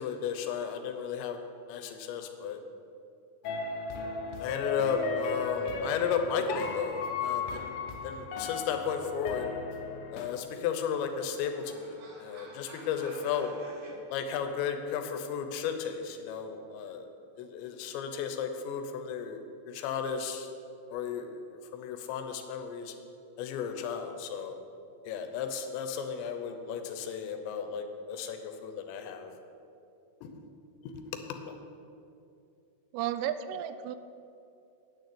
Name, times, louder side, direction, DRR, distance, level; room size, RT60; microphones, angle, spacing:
voice 1, 0.0-1.4 1.7-2.6 4.4-7.7 8.0-9.5 10.1-13.5 14.1-17.1 17.4-20.5 20.9-22.9 23.4-24.6 25.0-29.3 30.2-30.3 30.8-31.6, left 7 dB, 90° left, 6 dB, 3.1 m, -34 dB
sound 1, 3.4-10.3, left 5 dB, 75° left, 2.4 m, -35 dB
sound 2, 10.1-14.0, right 2 dB, 65° right, 1.3 m, -52 dB
voice 2, 32.9-34.0, right 10 dB, 85° right, 11 dB, 2.6 m, -33 dB
9.4 x 6.6 x 8.5 m, 2.6 s
omnidirectional pair, 5.0 m